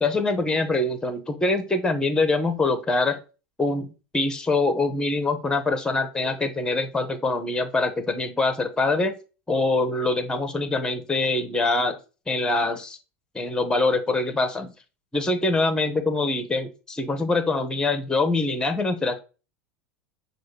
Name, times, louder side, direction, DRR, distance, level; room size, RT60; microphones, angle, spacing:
voice 1, 0.0-3.2 3.6-3.9 4.1-9.2 9.5-12.0 12.3-13.0 13.3-14.7 15.1-19.2, left 3 dB, 10° left, 8 dB, 0.8 m, -24 dB
6.1 x 2.4 x 3.3 m, 0.32 s
hypercardioid pair, 90°, 7 cm